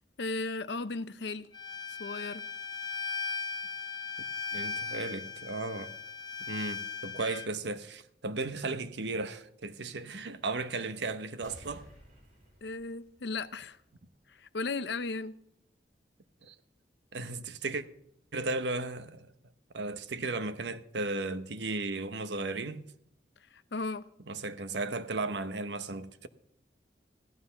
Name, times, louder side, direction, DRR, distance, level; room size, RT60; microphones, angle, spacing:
voice 1, 0.2-1.5 1.9-2.4 12.6-13.8 14.3-15.4 23.5-24.1, left 3 dB, 75° left, 0.7 m, -36 dB
Bowed string instrument, 1.5-7.5, left 5 dB, 25° left, 0.8 m, -38 dB
voice 2, 4.5-5.9 6.5-11.8 16.4-16.5 17.1-17.8 18.3-19.3 19.7-22.9 24.2-26.3, right 3 dB, 80° right, 1.0 m, -35 dB
sound 1, 11.4-14.0 14.4-14.5, equal, 40° right, 5.6 m, -55 dB
15.5 x 12.0 x 5.7 m
head